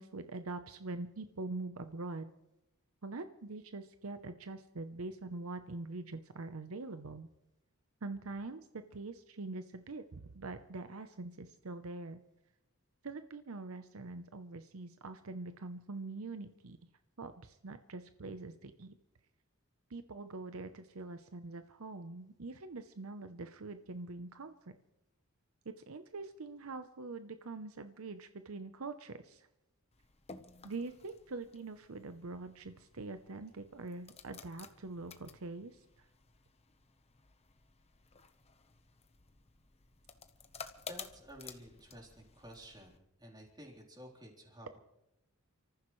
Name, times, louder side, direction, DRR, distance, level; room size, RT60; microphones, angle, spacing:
voice 1, 0.0-2.3 3.0-7.3 8.0-8.7 8.9-12.2 13.0-16.8 17.2-18.9 19.9-24.7 25.9-29.5 30.6-35.8, right 3 dB, 70° right, 9 dB, 0.8 m, -44 dB
sound 1, 29.9-43.0, left 5 dB, 30° left, 1.0 m, -54 dB
voice 2, 40.9-44.8, equal, 20° right, -1 dB, 3.8 m, -52 dB
29.5 x 14.5 x 3.2 m, 0.91 s
head